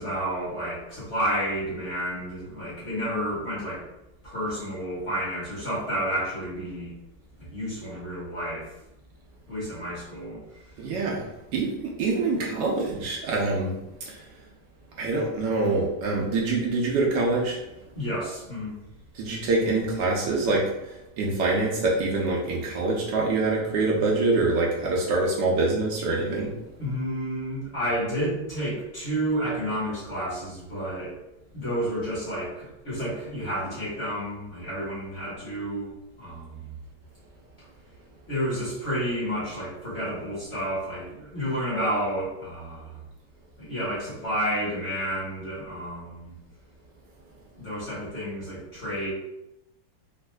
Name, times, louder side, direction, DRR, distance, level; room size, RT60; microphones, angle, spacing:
voice 1, 0.0-3.8 4.2-6.9 7.4-8.7 9.5-10.4 17.9-18.8 26.8-31.1 31.5-35.9 36.2-36.7 38.3-42.9 43.6-46.3 47.5-49.1, equal, 40° left, -8 dB, 1.3 m, -30 dB
voice 2, 10.8-13.7 14.0-14.2 15.0-17.6 19.1-26.5, right 3 dB, 70° right, -2 dB, 1.1 m, -25 dB
4.2 x 2.4 x 2.2 m, 0.89 s
omnidirectional pair, 2.2 m